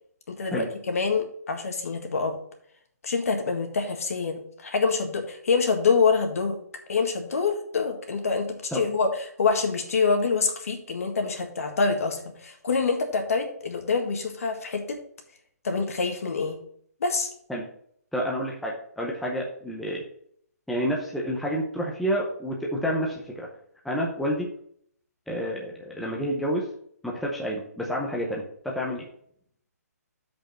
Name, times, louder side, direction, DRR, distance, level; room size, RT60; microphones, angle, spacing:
voice 1, 0.3-2.4 3.0-6.6 6.9-9.1 9.4-15.0 15.6-16.6 17.0-17.3, left 4 dB, 60° left, 5 dB, 1.7 m, -26 dB
voice 2, 18.1-20.0 20.7-23.5 23.8-24.5 25.3-26.6 27.0-29.1, equal, ahead, -3 dB, 0.6 m, -29 dB
6.3 x 5.2 x 6.1 m, 0.64 s
hypercardioid pair, 170°, 9 cm